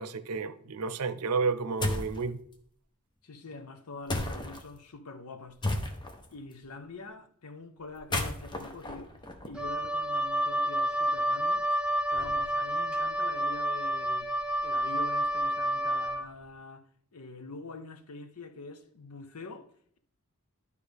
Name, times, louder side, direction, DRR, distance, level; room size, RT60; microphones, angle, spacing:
voice 1, 0.0-2.4, right 4 dB, 90° right, 0.6 m, -31 dB
sound 1, 1.8-2.2 4.1-4.6 5.6-6.3 7.9-9.9, left 1 dB, 20° left, 0.9 m, -33 dB
voice 2, 3.2-5.9 6.3-9.1 9.4-11.8 12.1-14.3 14.6-19.7, left 3 dB, 80° left, 0.9 m, -45 dB
Wind instrument woodwind instrument, 9.5-16.2, equal, 5° right, 0.7 m, -29 dB
11.5 x 4.9 x 3.4 m
head